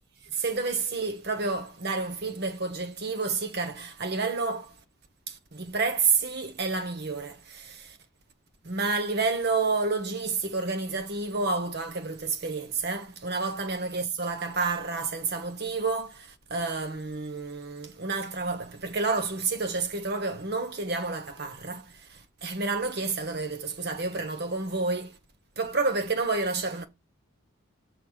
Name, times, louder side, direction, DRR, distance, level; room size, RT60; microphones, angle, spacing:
voice 1, 0.3-4.8 5.3-8.0 8.6-25.2 25.6-26.8, right 4 dB, 50° right, 1.1 m, -30 dB
6.6 x 3.1 x 5.6 m
head